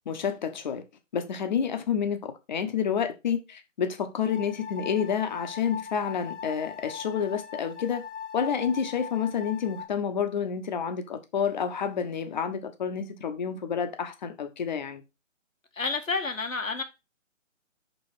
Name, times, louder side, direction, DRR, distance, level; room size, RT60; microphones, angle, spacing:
voice 1, 0.1-0.8 1.1-8.0 8.3-15.0, left 7 dB, 35° left, 1.0 m, -29 dB
sound 1, 4.3-9.8, left 7 dB, 65° left, 1.3 m, -40 dB
voice 2, 15.7-16.8, left 4 dB, 85° left, 1.8 m, -29 dB
5.5 x 5.4 x 4.4 m
figure-of-eight pair, 150°, 39 cm